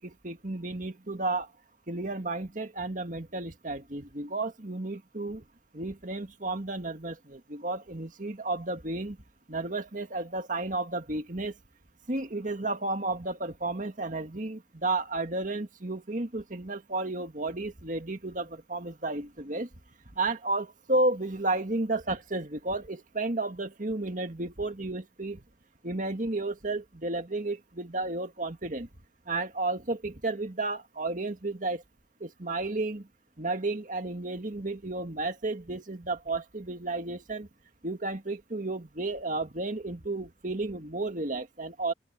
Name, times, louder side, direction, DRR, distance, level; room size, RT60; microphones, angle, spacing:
voice 1, 0.0-1.5 1.9-5.4 5.7-9.2 9.5-11.5 12.1-19.7 20.2-25.4 25.8-28.9 29.3-31.8 32.2-33.1 33.4-37.5 37.8-41.9, right 2 dB, 45° right, 1.9 m, -32 dB
open air
head